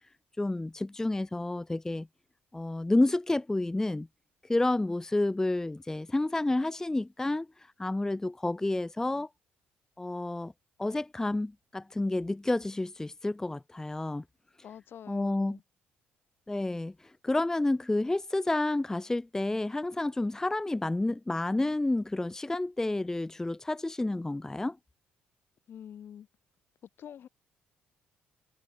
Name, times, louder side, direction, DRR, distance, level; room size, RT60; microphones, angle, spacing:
voice 1, 0.4-2.1 2.5-4.1 4.5-7.5 7.8-9.3 10.0-10.5 10.8-14.2 15.1-15.6 16.5-16.9 17.2-24.8, left 2 dB, 10° left, 0.5 m, -30 dB
voice 2, 14.6-15.6 25.7-26.3 27.0-27.3, left 9 dB, 55° left, 1.4 m, -46 dB
supercardioid pair, 65°, 4 cm